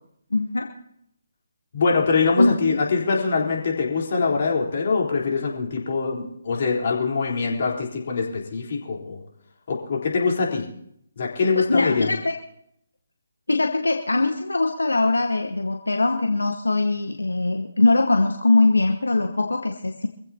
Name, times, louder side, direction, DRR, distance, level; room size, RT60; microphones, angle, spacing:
voice 1, 0.3-0.7 2.4-2.8 11.5-12.3 13.5-20.1, left 2 dB, 80° left, 3 dB, 1.1 m, -21 dB
voice 2, 1.7-9.2 9.7-10.6 11.2-12.1, left 4 dB, 45° left, -1 dB, 3.8 m, -23 dB
25.0 x 15.5 x 2.9 m, 0.74 s
figure-of-eight pair, 145°, 0 cm